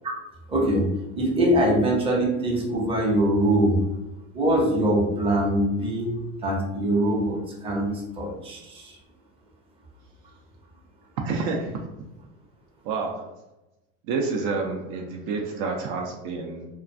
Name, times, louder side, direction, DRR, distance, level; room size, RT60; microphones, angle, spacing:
voice 1, 0.5-0.8 1.2-3.8 4.3-6.2 6.4-7.9 8.2-9.0, right 1 dB, 15° right, -2 dB, 0.6 m, -23 dB
voice 2, 11.2-11.8 12.8-13.3 14.1-16.7, right 4 dB, 60° right, 2 dB, 0.5 m, -28 dB
2.3 x 2.2 x 2.5 m, 0.98 s
supercardioid pair, 115°, 34 cm